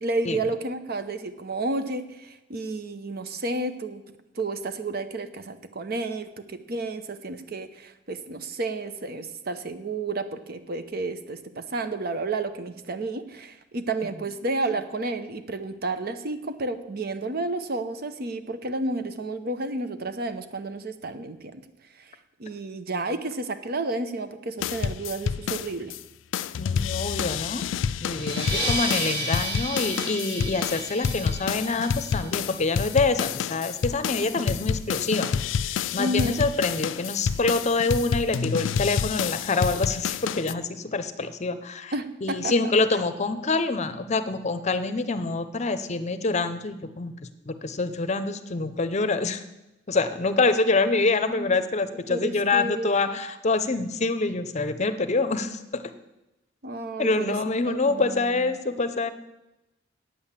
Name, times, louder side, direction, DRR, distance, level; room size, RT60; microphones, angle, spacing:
voice 1, 0.0-21.6 22.4-25.9 28.5-28.7 36.0-36.4 41.9-42.5 51.3-51.5 52.1-52.9 56.6-57.3 57.7-58.5, right 2 dB, 55° right, 10 dB, 0.8 m, -31 dB
sound 1, 24.6-26.0 26.3-40.5, left 7 dB, 85° left, 0.4 m, -29 dB
voice 2, 26.6-27.6 28.0-35.3 35.8-41.9 42.2-47.1 47.5-49.4 49.9-55.8 57.0-59.1, left 3 dB, 35° left, 11 dB, 0.7 m, -26 dB
sound 2, 28.1-33.3, right 2 dB, 30° right, 2.9 m, -33 dB
8.8 x 8.6 x 7.3 m, 0.98 s
head